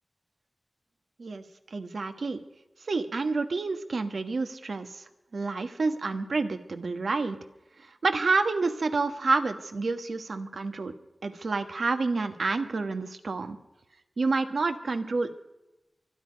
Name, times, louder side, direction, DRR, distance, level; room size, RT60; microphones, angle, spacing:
voice 1, 1.7-2.4 2.9-5.0 5.3-7.4 8.0-10.9 11.2-13.6 14.2-15.3, right 3 dB, 80° right, 7 dB, 1.3 m, -28 dB
24.5 x 10.5 x 5.2 m, 0.96 s
wide cardioid pair, 60°, 0 cm